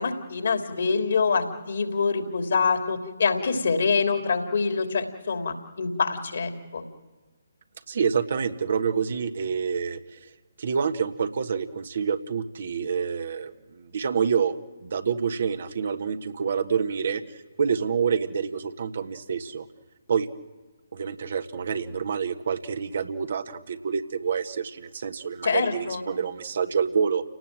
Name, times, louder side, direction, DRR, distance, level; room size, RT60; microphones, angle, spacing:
voice 1, 0.0-6.8 25.4-26.0, left 5 dB, 60° left, 5 dB, 3.2 m, -25 dB
voice 2, 7.9-10.3 10.6-14.6 14.8-19.6 20.1-20.3 20.9-27.2, right 6 dB, 50° right, 8 dB, 1.5 m, -27 dB
30.0 x 18.5 x 7.7 m, 1.3 s
figure-of-eight pair, 140°, 0 cm